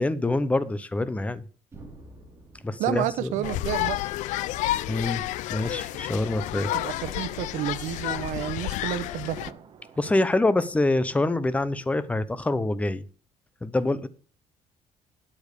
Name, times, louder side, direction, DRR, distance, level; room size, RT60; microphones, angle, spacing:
voice 1, 0.0-1.4 2.6-3.3 4.9-5.2 5.5-6.8 10.0-13.0 13.6-14.1, left 2 dB, 10° left, 0.8 m, -25 dB
sound 1, 1.7-5.7, right 2 dB, 20° right, 3.4 m, -51 dB
voice 2, 2.8-4.0 6.7-9.4, right 12 dB, 90° right, 0.9 m, -30 dB
sound 2, 3.4-9.5, left 15 dB, 85° left, 0.5 m, -30 dB
sound 3, 5.6-12.2, right 7 dB, 40° right, 1.4 m, -51 dB
8.8 x 8.4 x 6.7 m
cardioid pair, 145°, 12 cm